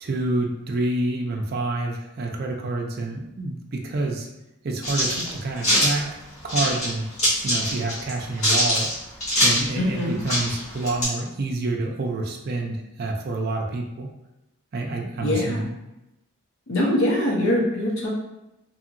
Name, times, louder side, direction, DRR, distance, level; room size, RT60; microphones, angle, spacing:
voice 1, 0.0-4.3 4.6-6.1 6.4-7.1 7.4-8.9 9.4-14.1 14.7-15.7, right 2 dB, 45° right, 1 dB, 0.4 m, -28 dB
sound 1, 4.8-5.9 6.5-6.9 7.2-8.1 8.4-9.7 10.0-10.1 10.3-11.0, equal, 30° left, 1.1 m, -22 dB
voice 2, 9.8-10.2 15.2-15.6 16.7-18.1, left 1 dB, 70° left, -2 dB, 0.8 m, -23 dB
2.7 x 2.7 x 2.5 m, 0.92 s
head